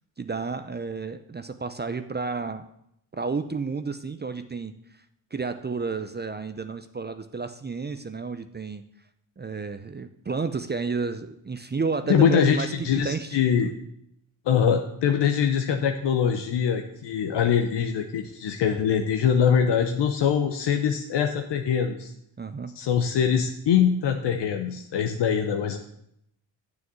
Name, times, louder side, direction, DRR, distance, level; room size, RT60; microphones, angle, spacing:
voice 1, 0.2-2.6 3.2-4.7 5.3-8.8 9.4-13.7 22.4-22.8, right 4 dB, 20° right, 10 dB, 0.6 m, -31 dB
voice 2, 12.1-13.7 14.5-22.1 22.8-25.8, left 7 dB, 65° left, 5 dB, 0.9 m, -23 dB
7.0 x 6.4 x 7.5 m, 0.75 s
supercardioid pair, 55°, 45 cm